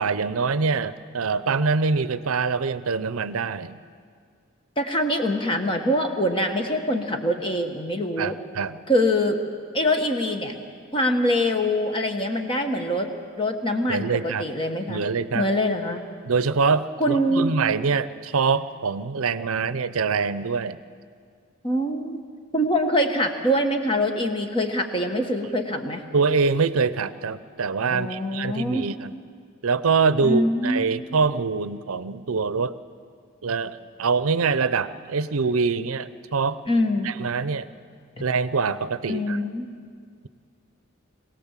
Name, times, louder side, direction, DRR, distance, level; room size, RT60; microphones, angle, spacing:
voice 1, 0.0-3.8 8.2-8.8 13.9-14.5 14.9-15.5 16.3-20.8 26.1-29.1 29.6-32.7 33.4-36.6 37.0-37.7 38.2-39.4, right 5 dB, 90° right, 15 dB, 0.6 m, -24 dB
voice 2, 4.8-8.4 8.9-9.4 9.7-10.5 10.9-13.1 13.4-15.1 15.3-16.0 17.0-17.5 21.6-22.2 22.5-26.0 27.9-28.9 30.2-30.9 36.7-37.2 39.1-39.7, left 1 dB, 25° left, 5 dB, 1.3 m, -24 dB
22.0 x 17.5 x 7.4 m, 2.1 s
head